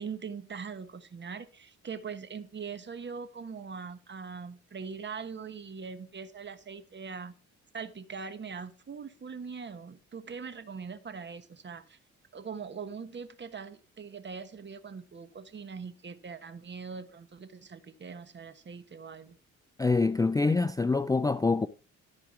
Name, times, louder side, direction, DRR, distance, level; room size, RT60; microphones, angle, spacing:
voice 1, 0.0-7.3 7.7-12.0 12.3-19.4 20.5-20.6, right 5 dB, 35° right, 1.3 m, -41 dB
voice 2, 19.8-21.7, left 3 dB, 10° left, 0.4 m, -25 dB
13.5 x 5.0 x 6.0 m
cardioid pair, 90°, 30 cm